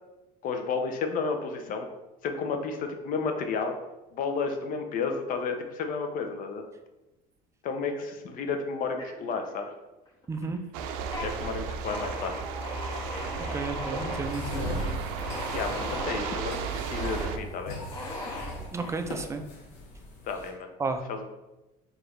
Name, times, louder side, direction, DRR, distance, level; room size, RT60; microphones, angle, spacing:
voice 1, 0.4-1.9 2.2-3.8 4.1-6.6 7.6-9.7 11.2-12.3 15.5-17.8 20.2-20.7 21.1-21.2, left 5 dB, 50° left, 5 dB, 0.6 m, -32 dB
sound 1, 9.0-9.7 10.0-10.6 10.9-11.3 11.8-16.4 16.9-17.3 17.9-18.9, left 1 dB, 25° left, 1.3 m, -38 dB
voice 2, 10.3-10.6 13.5-14.6 18.7-19.4 20.8-21.2, right 3 dB, 15° right, 7 dB, 0.4 m, -32 dB
sound 2, 10.7-17.4, right 6 dB, 90° right, 0.4 m, -35 dB
sound 3, 14.1-20.5, left 1 dB, 90° left, 1.1 m, -38 dB
4.8 x 2.6 x 3.1 m, 1.0 s
cardioid pair, 115°, 18 cm